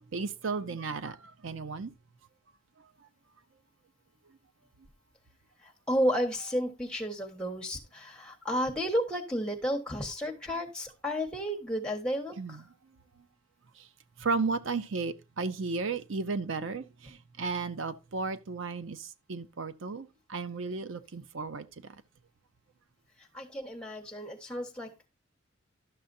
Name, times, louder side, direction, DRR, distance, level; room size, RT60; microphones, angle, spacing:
voice 1, 0.1-1.2 1.4-1.9 12.4-12.5 14.2-16.8 17.4-19.0 19.3-21.6, right 4 dB, 75° right, 0.6 m, -33 dB
voice 2, 5.6-12.7 23.2-25.1, equal, 5° left, 1.3 m, -32 dB
12.0 x 6.7 x 2.6 m
head